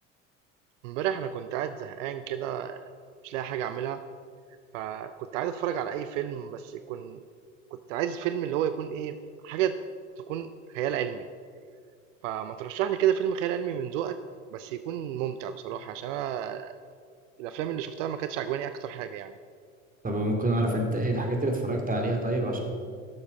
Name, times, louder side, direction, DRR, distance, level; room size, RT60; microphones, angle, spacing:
voice 1, 0.8-2.8 3.2-4.0 4.7-7.2 7.9-9.2 9.4-9.8 10.3-11.3 12.2-14.2 14.5-16.7 17.4-19.3, right 10 dB, 75° right, 11 dB, 0.6 m, -31 dB
voice 2, 20.0-22.6, right 1 dB, 20° right, 2 dB, 2.4 m, -27 dB
12.0 x 7.2 x 5.3 m, 2.1 s
hypercardioid pair, 70°, 38 cm